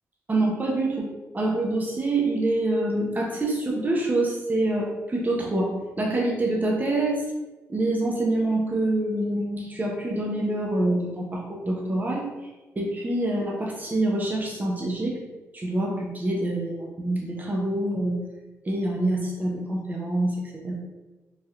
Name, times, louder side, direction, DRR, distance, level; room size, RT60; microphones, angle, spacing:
voice 1, 0.3-1.1 1.3-7.2 7.7-12.2 12.8-15.2 15.5-18.2 18.7-20.7, right 2 dB, 30° right, -2 dB, 0.6 m, -26 dB
3.1 x 2.7 x 2.4 m, 1.2 s
cardioid pair, 60°, 6 cm